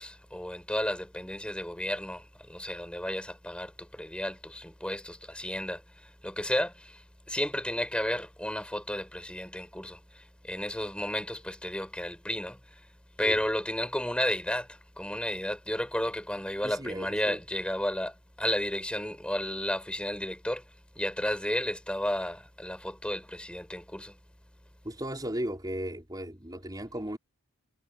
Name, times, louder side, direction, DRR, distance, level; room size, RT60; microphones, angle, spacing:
voice 1, 0.0-5.8 6.2-7.0 7.3-12.6 13.2-20.6 21.0-24.1, left 1 dB, 5° left, 5.8 m, -32 dB
voice 2, 16.6-17.4 24.8-27.2, right 1 dB, 20° right, 5.0 m, -36 dB
head